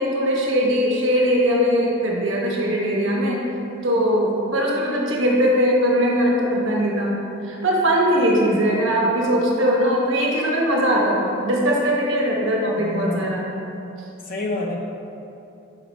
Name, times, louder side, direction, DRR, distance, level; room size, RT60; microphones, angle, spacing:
voice 1, 0.0-3.4 3.8-13.5, equal, 65° right, -2 dB, 1.0 m, -20 dB
voice 2, 12.8-13.3 14.2-14.8, left 2 dB, 40° left, -1 dB, 0.7 m, -28 dB
5.7 x 4.5 x 4.1 m, 2.8 s
head